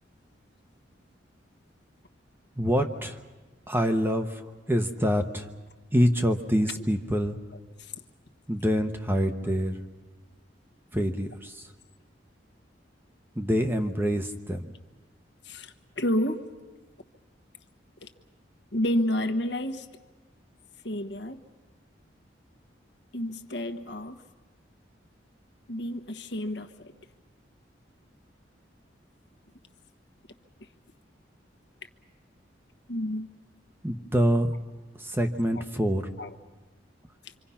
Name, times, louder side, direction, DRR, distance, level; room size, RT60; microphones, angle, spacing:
voice 1, 2.6-3.2 3.7-4.4 4.7-5.5 5.9-7.4 8.5-9.8 10.9-11.7 13.4-14.7 33.8-34.5 35.0-36.1, equal, 10° right, 6 dB, 1.0 m, -26 dB
voice 2, 7.5-7.9 9.5-9.6 15.4-16.4 18.0-18.1 18.7-19.9 20.8-21.4 23.1-24.2 25.7-26.9 32.9-33.3 35.5-35.6 36.2-36.3 37.2-37.3, left 1 dB, 65° left, 7 dB, 1.3 m, -30 dB
26.0 x 25.5 x 5.8 m, 1.3 s
head